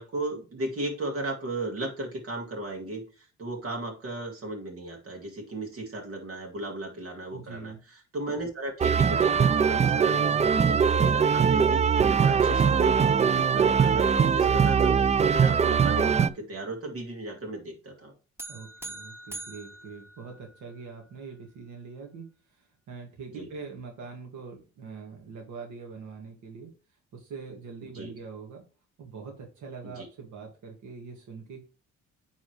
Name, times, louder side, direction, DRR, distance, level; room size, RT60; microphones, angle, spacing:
voice 1, 0.0-7.7 8.1-18.1 23.3-23.5 27.9-28.1 29.8-30.1, right 1 dB, 50° right, 2 dB, 2.5 m, -35 dB
voice 2, 7.3-7.8 10.0-10.7 13.1-13.3 18.5-26.7 27.1-28.6 29.0-31.6, right 5 dB, 75° right, 0 dB, 1.9 m, -43 dB
sound 1, 8.8-16.3, right 6 dB, 25° right, 0.3 m, -22 dB
sound 2, 18.4-20.9, right 2 dB, 10° right, 0.9 m, -43 dB
10.0 x 4.1 x 3.2 m, 0.35 s
cardioid pair, 90°, 30 cm